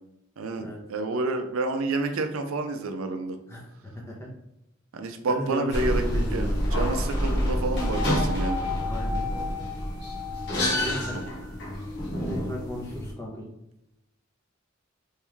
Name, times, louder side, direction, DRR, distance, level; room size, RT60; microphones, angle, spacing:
voice 1, 0.4-3.4 4.9-6.0 6.3-8.6 11.1-11.3, right 2 dB, 80° right, 6 dB, 0.5 m, -29 dB
voice 2, 3.5-4.3 5.3-6.5 8.8-9.2 10.8-11.2 12.3-13.5, left 1 dB, 15° left, -3 dB, 0.8 m, -36 dB
sound 1, 5.7-13.1, left 1 dB, 55° left, 1.0 m, -28 dB
3.1 x 3.1 x 3.5 m, 0.87 s
head